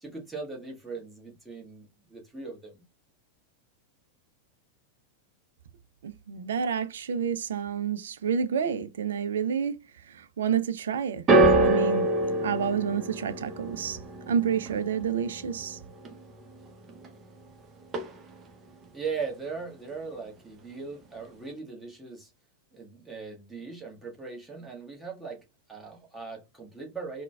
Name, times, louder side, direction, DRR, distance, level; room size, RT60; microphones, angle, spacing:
voice 1, 0.0-2.8 18.9-22.3 22.7-27.2, right 4 dB, 10° right, 1.1 m, -39 dB
voice 2, 6.0-9.8 10.1-11.2 11.6-12.1 12.4-14.0 14.3-15.8, right 7 dB, 65° right, 0.3 m, -29 dB
sound 1, 11.3-17.6 17.8-18.5 19.2-19.3, right 2 dB, 25° right, 0.7 m, -27 dB
3.8 x 2.1 x 2.2 m
figure-of-eight pair, 90°, 0 cm